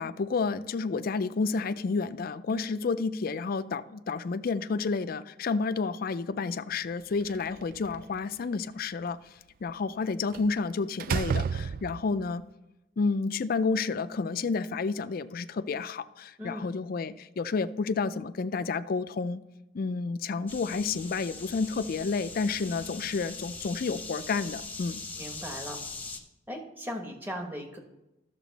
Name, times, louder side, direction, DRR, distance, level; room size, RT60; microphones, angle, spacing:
voice 1, 0.0-9.2 9.6-12.4 13.0-19.4 19.7-25.0, left 4 dB, 50° left, 0.4 m, -30 dB
Slam, 7.2-8.2 10.3-10.6 11.0-12.2, right 6 dB, 50° right, 0.3 m, -31 dB
sound 1, 20.5-26.2, left 4 dB, 10° left, 1.0 m, -41 dB
voice 2, 25.2-25.8 26.5-27.8, equal, 10° right, 1.3 m, -38 dB
12.5 x 6.7 x 4.0 m
head